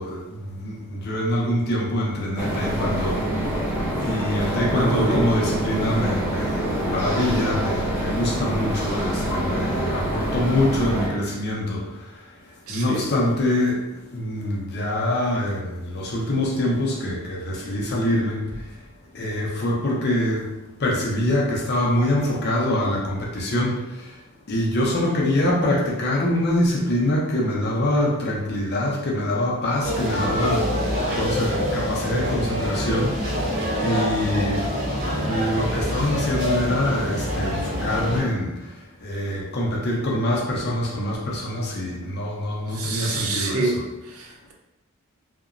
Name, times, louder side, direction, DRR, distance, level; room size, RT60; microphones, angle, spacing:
voice 1, 0.0-3.5 4.0-12.3 12.7-18.6 19.1-20.5 20.8-24.2 24.5-30.7 31.2-33.4 33.8-34.8 35.2-38.7 39.0-43.8, left 1 dB, 50° left, -3 dB, 0.6 m, -25 dB
sound 1, 2.4-11.1, right 1 dB, 10° right, 0.5 m, -26 dB
voice 2, 4.7-5.3 12.7-13.1 42.7-44.5, right 2 dB, 75° right, 0 dB, 0.5 m, -27 dB
sound 2, 29.8-38.2, equal, 45° right, 1.2 m, -25 dB
2.8 x 2.1 x 2.4 m, 0.99 s
head